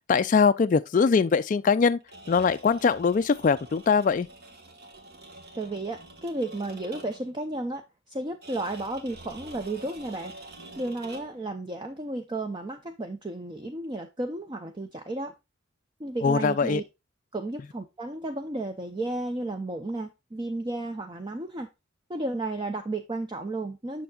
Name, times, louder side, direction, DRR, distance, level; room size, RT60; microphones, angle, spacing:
voice 1, 0.1-2.0 2.3-4.3 16.2-16.8, left 5 dB, 40° left, 0.3 m, -22 dB
sound 1, 2.0-7.4 8.4-11.5, right 2 dB, 50° right, 1.3 m, -46 dB
voice 2, 5.6-10.3 10.8-15.3 16.0-16.8 17.3-21.7 22.1-24.0, right 2 dB, 25° right, 0.5 m, -33 dB
6.9 x 6.5 x 2.3 m
head